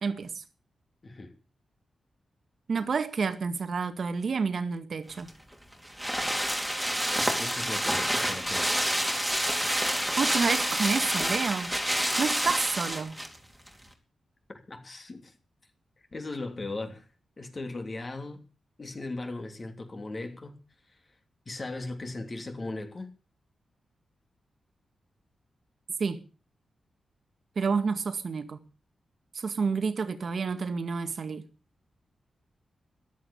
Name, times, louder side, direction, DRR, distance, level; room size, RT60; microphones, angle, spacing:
voice 1, 0.0-0.4 2.7-5.3 10.2-11.7 12.2-13.2 26.0-26.2 27.6-28.6 29.3-31.4, right 5 dB, 55° right, 1.9 m, -29 dB
sound 1, 5.2-13.4 13.7-13.8, equal, 5° right, 3.0 m, -28 dB
voice 2, 7.2-8.7 14.7-15.3 16.1-17.1 17.4-18.4 18.8-20.6 21.4-23.1, left 2 dB, 35° left, 3.0 m, -38 dB
14.0 x 11.5 x 7.1 m
wide cardioid pair, 120°, 0 cm